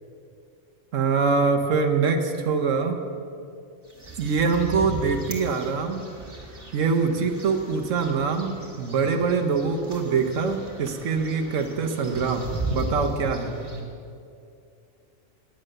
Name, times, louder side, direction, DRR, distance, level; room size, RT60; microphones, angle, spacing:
voice 1, 0.9-3.0 4.2-6.0 6.7-13.6, right 5 dB, 90° right, 4 dB, 1.3 m, -24 dB
birds singing, 3.8-13.8, right 1 dB, 20° right, 1.9 m, -37 dB
10.0 x 9.9 x 6.5 m, 2.5 s
omnidirectional pair, 1.3 m